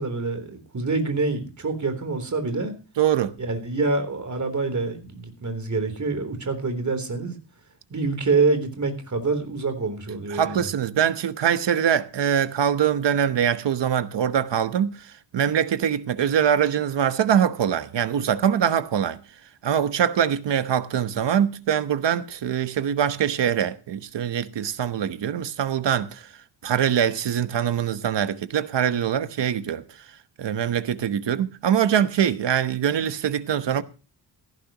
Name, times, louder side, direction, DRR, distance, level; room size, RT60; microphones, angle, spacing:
voice 1, 0.0-2.7 3.4-7.4 7.9-10.7, right 3 dB, 40° right, 3.5 m, -26 dB
voice 2, 3.0-3.3 10.3-19.2 19.6-26.3 26.6-29.8 30.4-33.8, right 9 dB, 75° right, 1.1 m, -23 dB
17.0 x 14.5 x 3.0 m
wide cardioid pair, 130°, 43 cm